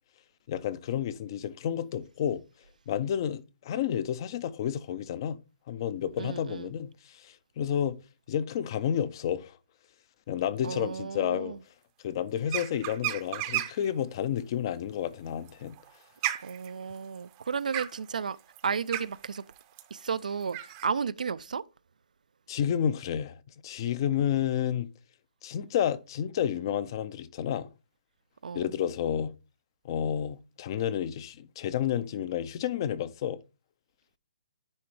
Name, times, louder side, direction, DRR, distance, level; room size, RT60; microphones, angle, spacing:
voice 1, 0.5-2.4 2.9-5.4 5.7-8.0 8.3-9.6 10.3-11.6 12.0-15.8 22.5-23.4 23.6-24.9 25.4-27.7 28.5-29.3 29.8-33.4, left 9 dB, 35° left, 0.5 m, -30 dB
voice 2, 6.2-6.7 10.6-11.6 16.4-18.4 18.6-19.4 19.9-21.6 28.4-28.7, right 6 dB, 85° right, 0.4 m, -33 dB
sound 1, 12.5-13.9 15.3-20.9, right 15 dB, 25° right, 0.6 m, -34 dB
9.7 x 3.4 x 3.2 m
hypercardioid pair, 160°, 4 cm